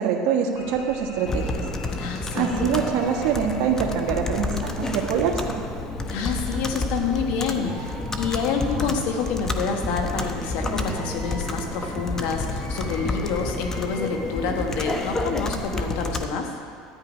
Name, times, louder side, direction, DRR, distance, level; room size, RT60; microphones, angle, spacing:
voice 1, 0.0-1.6 2.3-5.4, right 7 dB, 65° right, 0 dB, 1.5 m, -24 dB
sound 1, 0.5-15.8, left 3 dB, 85° left, 1.4 m, -43 dB
Computer keyboard, 1.3-16.3, left 2 dB, 20° left, 0.9 m, -30 dB
voice 2, 2.0-2.7 6.1-16.5, left 5 dB, 70° left, 4 dB, 1.2 m, -28 dB
sound 2, 7.7-14.1, right 3 dB, 35° right, 1.0 m, -39 dB
13.0 x 9.8 x 5.1 m, 2.3 s
supercardioid pair, 115°, 2 cm